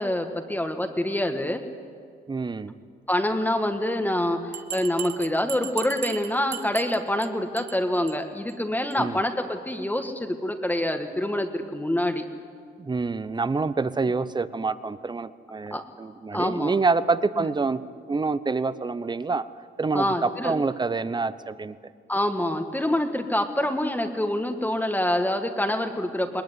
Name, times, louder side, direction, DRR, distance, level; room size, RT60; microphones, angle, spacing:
voice 1, 0.0-1.6 3.1-12.2 15.7-15.8 16.3-16.8 17.4-17.5 19.9-20.5 22.1-26.4, left 1 dB, 10° left, 6 dB, 1.7 m, -26 dB
voice 2, 2.3-2.8 8.9-9.2 12.8-17.8 18.1-19.4 19.8-21.8, right 4 dB, 20° right, 15 dB, 0.9 m, -27 dB
Bell, 4.5-7.3 7.6-7.8 8.1-8.2 8.5-8.6 8.9-9.0, right 10 dB, 55° right, 0.9 m, -36 dB
20.5 x 20.0 x 9.3 m, 2.1 s
cardioid pair, 90°, 20 cm